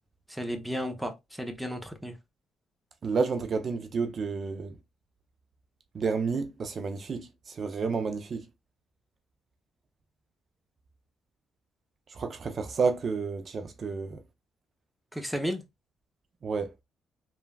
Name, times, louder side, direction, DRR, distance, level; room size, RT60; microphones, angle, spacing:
voice 1, 0.3-2.1 15.1-15.6, equal, ahead, 0.6 m, -33 dB
voice 2, 3.0-4.7 5.9-8.4 12.1-14.2 16.4-16.7, right 4 dB, 45° right, 0.4 m, -30 dB
3.2 x 2.3 x 2.2 m
cardioid pair, 90°, 0 cm